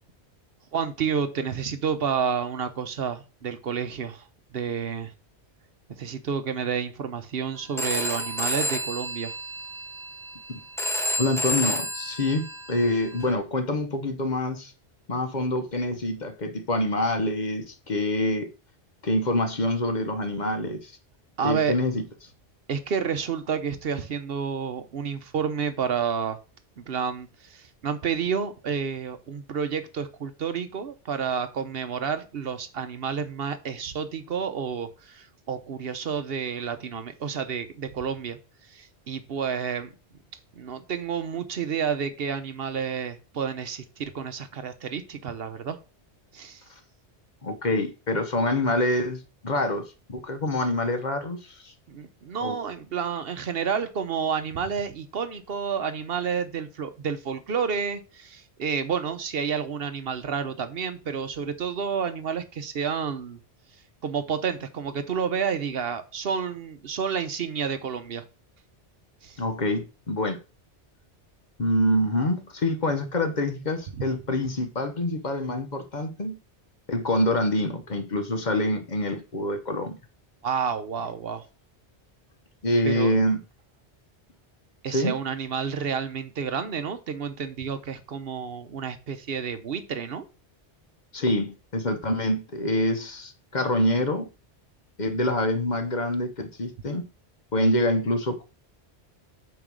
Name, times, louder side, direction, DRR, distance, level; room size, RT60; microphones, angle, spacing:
voice 1, 0.7-4.3 4.5-5.1 6.0-9.3 21.4-21.7 22.7-26.4 26.8-38.4 38.7-39.9 40.6-45.8 46.3-46.6 51.9-63.4 64.0-68.2 69.2-69.4 80.4-81.5 82.8-83.1 84.8-90.3, right 6 dB, 60° right, 0.9 m, -30 dB
Telephone, 7.8-13.3, left 1 dB, 5° left, 0.8 m, -30 dB
voice 2, 11.2-14.7 15.1-18.5 19.0-21.0 21.4-22.0 47.4-51.7 52.4-52.6 69.4-70.4 71.6-76.4 76.9-80.0 82.6-83.4 84.9-85.2 91.1-94.3 95.0-97.1 97.5-98.4, left 1 dB, 45° left, 0.9 m, -26 dB
8.8 x 3.0 x 6.1 m
omnidirectional pair, 1.2 m